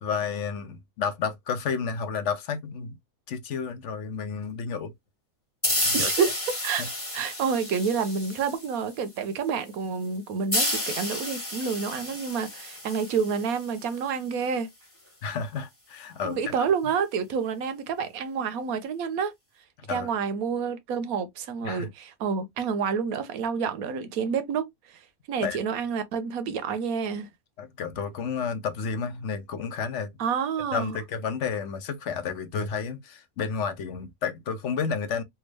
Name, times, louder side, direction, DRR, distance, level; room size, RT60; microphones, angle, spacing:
voice 1, 0.0-3.0 3.3-4.9 5.8-6.3 6.8-6.9 15.2-16.7 19.8-20.1 21.6-21.9 25.4-25.6 27.6-30.1 30.7-35.2, left 6 dB, 65° left, 0.9 m, -31 dB
sound 1, 5.6-9.0 10.5-14.0, left 1 dB, 10° left, 1.1 m, -31 dB
voice 2, 5.9-6.3 6.6-6.8 7.1-14.7 16.2-19.3 19.9-24.7 25.3-27.3 30.2-31.0, right 6 dB, 85° right, 1.2 m, -28 dB
3.5 x 2.4 x 3.2 m
omnidirectional pair, 1.5 m